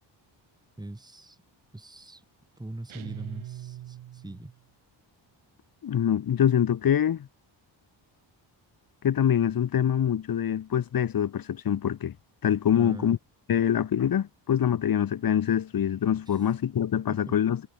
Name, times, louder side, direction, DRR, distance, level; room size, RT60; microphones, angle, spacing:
voice 1, 0.8-1.4 1.7-2.2 2.6-4.5 12.7-13.2 16.3-16.4 17.3-17.4, right 1 dB, 10° right, 2.6 m, -41 dB
sound 1, 2.9-4.6, right 12 dB, 90° right, 3.4 m, -41 dB
voice 2, 5.8-7.3 9.0-12.1 12.4-13.2 13.5-17.6, left 9 dB, 45° left, 1.1 m, -25 dB
cardioid pair, 90°, 46 cm